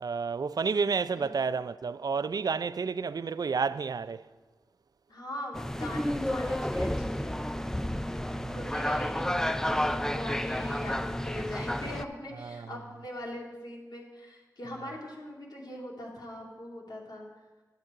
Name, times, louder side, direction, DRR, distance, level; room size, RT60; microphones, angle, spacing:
voice 1, 0.0-4.2 8.3-8.5 12.4-12.7, right 5 dB, 65° right, 0.3 m, -30 dB
voice 2, 5.1-7.5 8.5-17.3, left 1 dB, 85° left, 2.4 m, -41 dB
sound 1, 5.5-12.0, left 1 dB, 5° left, 0.4 m, -31 dB
11.0 x 7.4 x 4.8 m
cardioid pair, 45°, 7 cm